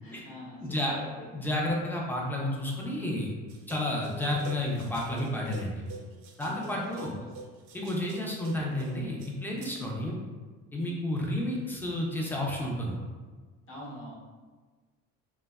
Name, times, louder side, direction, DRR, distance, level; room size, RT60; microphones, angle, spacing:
voice 1, 0.0-1.3 6.3-7.3 10.8-11.1 13.7-14.1, left 1 dB, 40° left, -5 dB, 0.9 m, -45 dB
voice 2, 0.6-0.9 1.3-3.3 3.7-5.8 6.4-7.1 7.7-10.2 10.7-13.0, left 1 dB, 5° left, -2 dB, 0.4 m, -31 dB
sound 1, 3.5-9.8, right 4 dB, 75° right, 0.5 m, -46 dB
2.6 x 2.1 x 2.3 m, 1.4 s
cardioid pair, 110°, 32 cm